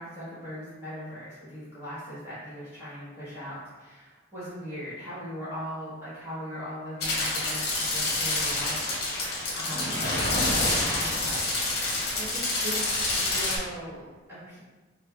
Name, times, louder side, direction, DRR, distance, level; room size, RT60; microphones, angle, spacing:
voice 1, 0.0-11.5 11.8-14.6, equal, 15° right, -12 dB, 1.2 m, -39 dB
sound 1, 7.0-13.6, left 2 dB, 55° left, 0.9 m, -27 dB
4.7 x 2.0 x 2.3 m, 1.2 s
head